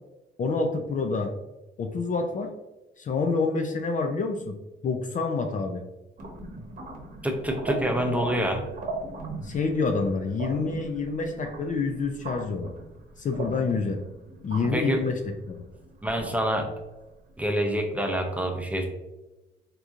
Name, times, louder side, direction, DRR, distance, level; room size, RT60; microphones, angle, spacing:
voice 1, 0.4-1.3 1.8-2.5 3.0-4.6 4.8-5.8 9.4-12.7 13.2-14.0 14.4-15.2 15.5-15.6, left 4 dB, 40° left, 5 dB, 0.4 m, -27 dB
sound 1, 6.2-17.3, right 2 dB, 40° right, 0.9 m, -39 dB
voice 2, 7.2-8.6 14.7-15.0 16.0-16.7 17.4-18.8, equal, 5° right, 3 dB, 0.6 m, -26 dB
3.7 x 2.8 x 2.4 m, 1.0 s
cardioid pair, 90°, 20 cm